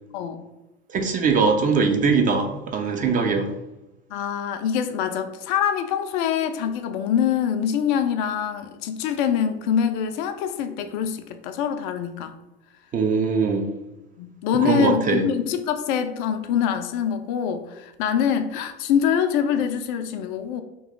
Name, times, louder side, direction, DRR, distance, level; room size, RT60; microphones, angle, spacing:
voice 1, 0.9-3.5 12.9-13.7 14.6-15.2, right 5 dB, 25° right, 4 dB, 0.5 m, -21 dB
voice 2, 4.1-12.3 14.2-20.6, left 8 dB, 50° left, 8 dB, 0.4 m, -24 dB
3.0 x 3.0 x 3.6 m, 1.0 s
figure-of-eight pair, 70°, 31 cm